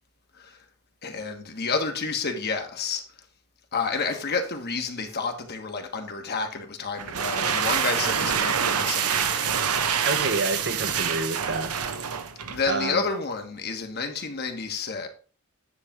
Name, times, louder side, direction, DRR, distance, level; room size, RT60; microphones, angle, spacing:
voice 1, 1.0-3.0 3.7-9.6 12.5-15.1, left 4 dB, 45° left, 1.3 m, -30 dB
sound 1, 7.0-12.7, right 7 dB, 85° right, 0.9 m, -26 dB
voice 2, 10.1-11.7 12.7-13.0, right 3 dB, 50° right, 0.9 m, -28 dB
9.7 x 3.3 x 5.9 m
head